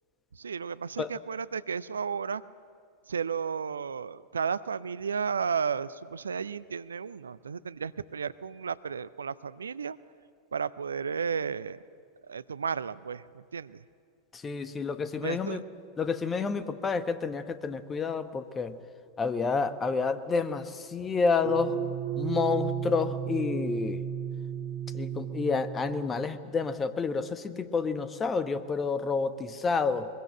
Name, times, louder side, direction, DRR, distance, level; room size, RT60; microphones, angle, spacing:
voice 1, 0.3-2.4 3.1-10.0 10.5-11.8 12.2-13.8 15.2-15.6, right 6 dB, 70° right, 17 dB, 0.5 m, -33 dB
voice 2, 14.3-15.6 16.0-18.8 19.2-21.7 22.2-24.0 24.9-30.1, left 4 dB, 20° left, 11 dB, 1.3 m, -29 dB
sound 1, 21.4-26.6, right 9 dB, 30° right, 2.2 m, -34 dB
23.0 x 22.0 x 7.7 m, 2.3 s
figure-of-eight pair, 90°, 0 cm